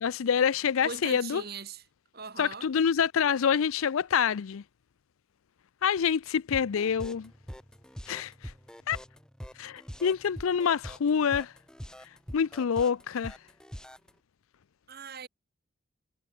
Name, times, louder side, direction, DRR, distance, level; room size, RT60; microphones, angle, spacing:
voice 1, 0.0-1.4 2.4-4.6 5.8-7.3 8.1-8.5 8.9-9.0 9.6-11.5 12.3-13.4, left 7 dB, 75° left, 0.4 m, -27 dB
voice 2, 0.8-1.8 2.1-2.7 14.9-15.3, right 4 dB, 45° right, 2.2 m, -40 dB
sound 1, 6.5-14.1, equal, 5° left, 2.3 m, -43 dB
head